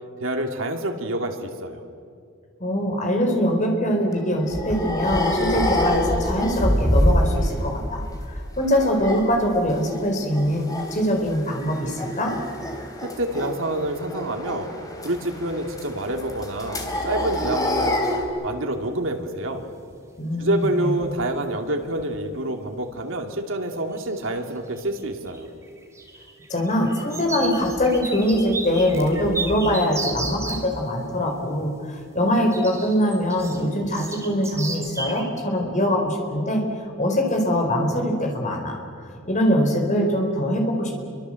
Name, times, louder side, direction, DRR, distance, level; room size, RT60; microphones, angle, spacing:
voice 1, 0.2-1.8 13.0-14.7 15.0-18.0 18.4-19.7 20.4-25.5, right 1 dB, 80° right, 4 dB, 2.6 m, -27 dB
voice 2, 2.6-8.0 8.6-12.3 20.2-20.9 26.5-36.6 37.0-38.8 39.2-40.9, equal, 40° left, 2 dB, 4.4 m, -23 dB
sound 1, 4.1-7.8 8.0-10.0 10.3-11.0 11.3-18.2, left 1 dB, 20° left, 3.0 m, -26 dB
sound 2, 17.0-17.1 17.3-17.9 19.9-20.0 20.6-20.7 21.0-21.4 21.7-22.2 22.8-22.9 23.9-24.4 24.7-30.7 32.5-35.2, right 2 dB, 15° right, 3.4 m, -34 dB
29.0 x 24.0 x 7.7 m, 2.4 s
head